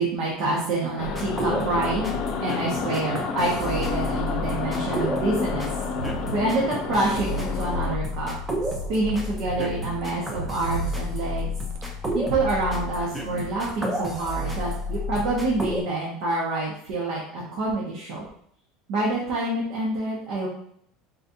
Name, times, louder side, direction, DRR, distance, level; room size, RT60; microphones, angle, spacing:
voice 1, 0.0-2.1 2.4-5.7 6.3-8.3 8.9-11.5 12.1-18.2 18.9-20.5, right 2 dB, 65° right, -4 dB, 1.2 m, -27 dB
sound 1, 1.0-7.9, left 4 dB, 55° left, 0.6 m, -30 dB
sound 2, 1.0-15.8, left 1 dB, 15° right, 0.7 m, -31 dB
sound 3, 5.9-13.7, right 2 dB, 85° right, 0.5 m, -36 dB
4.3 x 4.1 x 2.7 m, 0.66 s
supercardioid pair, 140°, 0 cm